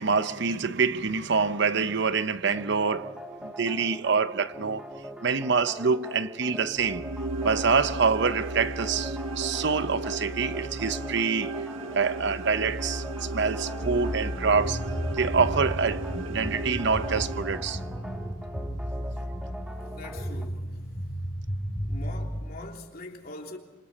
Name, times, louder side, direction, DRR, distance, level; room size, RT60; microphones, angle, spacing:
voice 1, 0.0-4.8 5.2-7.1 7.4-11.7 11.9-17.8, right 5 dB, 60° right, 0.8 m, -26 dB
sound 1, 2.5-20.5, right 1 dB, 5° right, 1.5 m, -42 dB
sound 2, 6.8-18.1, right 2 dB, 75° right, 1.3 m, -35 dB
sound 3, 13.8-22.5, equal, 30° left, 3.7 m, -34 dB
voice 2, 19.9-20.8 21.8-23.6, left 2 dB, 50° left, 3.2 m, -42 dB
27.5 x 26.0 x 4.3 m
head